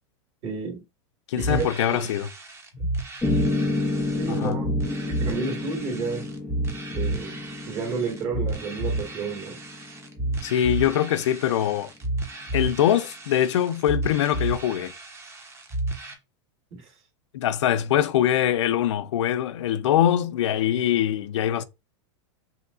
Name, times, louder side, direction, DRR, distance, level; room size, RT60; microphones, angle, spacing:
voice 1, 0.4-0.8 1.3-1.7 4.2-6.3 6.9-9.6 16.7-16.8, right 4 dB, 40° right, 2.0 m, -31 dB
voice 2, 1.3-2.3 4.3-4.6 10.4-11.9 12.5-14.9 17.3-21.6, left 11 dB, 85° left, 0.5 m, -23 dB
sound 1, 1.4-16.1, right 2 dB, 20° right, 0.9 m, -31 dB
Piano, 3.2-11.3, left 2 dB, 5° left, 0.4 m, -31 dB
5.6 x 2.8 x 2.6 m
supercardioid pair, 140°, 15 cm